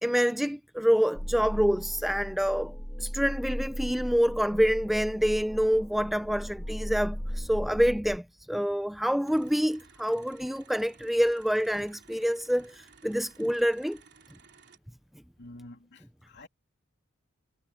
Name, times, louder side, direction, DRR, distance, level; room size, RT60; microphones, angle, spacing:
voice 1, 0.0-14.0, equal, ahead, 0.3 m, -27 dB
sound 1, 1.1-8.2, equal, 15° left, 2.5 m, -37 dB
sound 2, 9.2-14.8, right 6 dB, 55° right, 3.7 m, -57 dB
voice 2, 15.4-16.5, left 1 dB, 60° left, 3.1 m, -48 dB
head